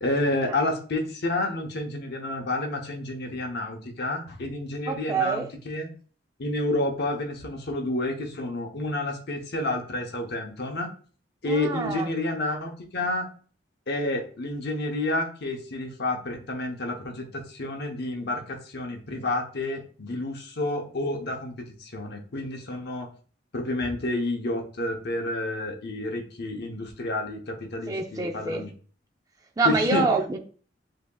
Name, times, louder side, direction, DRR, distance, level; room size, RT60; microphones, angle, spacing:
voice 1, 0.0-5.9 6.4-10.9 11.4-13.3 13.9-23.1 23.5-28.7 29.6-30.1, left 2 dB, 60° left, 3 dB, 0.9 m, -30 dB
voice 2, 4.9-5.5 11.5-12.1 27.9-28.7 29.6-30.4, right 4 dB, 20° right, 2 dB, 0.4 m, -26 dB
7.6 x 2.8 x 2.3 m, 0.42 s
head